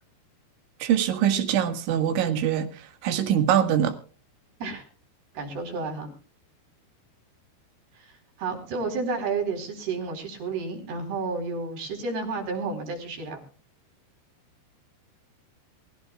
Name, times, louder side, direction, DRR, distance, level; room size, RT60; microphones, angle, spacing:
voice 1, 0.8-4.0, right 9 dB, 85° right, 4.2 m, -23 dB
voice 2, 5.3-6.1 7.9-13.4, right 4 dB, 60° right, 6.1 m, -31 dB
24.5 x 15.5 x 2.4 m
omnidirectional pair, 5.3 m